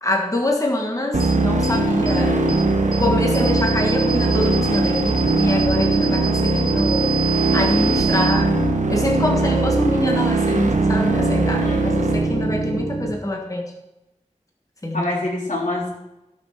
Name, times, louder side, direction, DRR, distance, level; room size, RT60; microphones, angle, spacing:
voice 1, 0.0-2.4 3.0-7.1 7.5-8.6 8.9-13.7 14.8-15.1, left 1 dB, 25° left, 1 dB, 1.5 m, -25 dB
sound 1, 1.1-13.1, right 2 dB, 75° right, 1.3 m, -20 dB
sound 2, 1.2-1.3 1.6-1.7 2.1-2.2 2.5-2.6 2.9-3.0 3.3-8.3, right 6 dB, 40° right, 2.6 m, -28 dB
voice 2, 11.6-12.0 14.9-15.9, left 2 dB, 85° left, -5 dB, 3.6 m, -26 dB
12.5 x 6.1 x 6.5 m, 0.93 s
wide cardioid pair, 65°, 13 cm